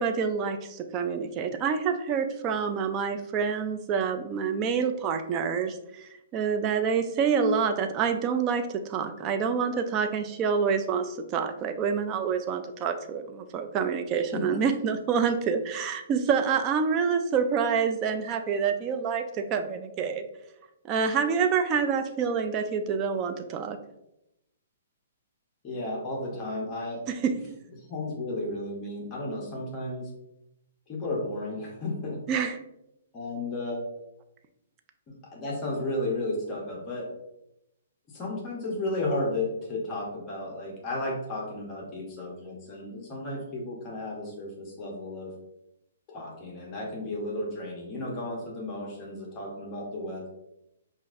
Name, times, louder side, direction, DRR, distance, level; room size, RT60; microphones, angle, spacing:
voice 1, 0.0-20.2 20.8-23.8 27.2-27.4 32.3-32.5, right 6 dB, 25° right, 7 dB, 0.3 m, -27 dB
voice 2, 25.6-27.0 27.8-30.1 30.9-32.2 33.1-33.9 35.3-37.1 38.1-45.3 46.1-50.3, left 2 dB, 25° left, -2 dB, 0.9 m, -33 dB
5.6 x 2.5 x 2.5 m, 0.85 s
hypercardioid pair, 160°, 0 cm